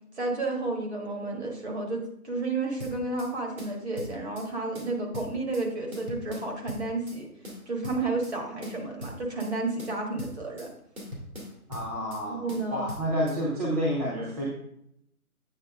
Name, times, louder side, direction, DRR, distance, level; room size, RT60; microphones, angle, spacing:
voice 1, 0.2-7.3 7.7-10.7 12.3-12.9, right 3 dB, 45° right, 0 dB, 1.7 m, -31 dB
sound 1, 2.8-3.3 3.6-4.5 4.7-5.7 5.9-7.2 7.4-8.3 8.6-9.5 9.8-10.7 11.0-12.2 12.5-13.4, left 1 dB, 65° right, 2.4 m, -41 dB
voice 2, 11.7-12.4 12.7-14.4, equal, 25° right, -6 dB, 1.0 m, -29 dB
8.3 x 4.4 x 3.5 m, 0.74 s
hypercardioid pair, 170°, 44 cm